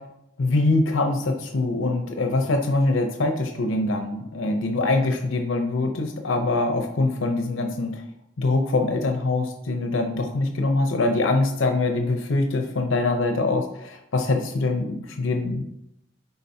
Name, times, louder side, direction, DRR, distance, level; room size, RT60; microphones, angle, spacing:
voice 1, 0.4-8.0 8.4-15.6, left 2 dB, 85° left, 4 dB, 0.7 m, -23 dB
9.7 x 4.0 x 2.7 m, 0.81 s
head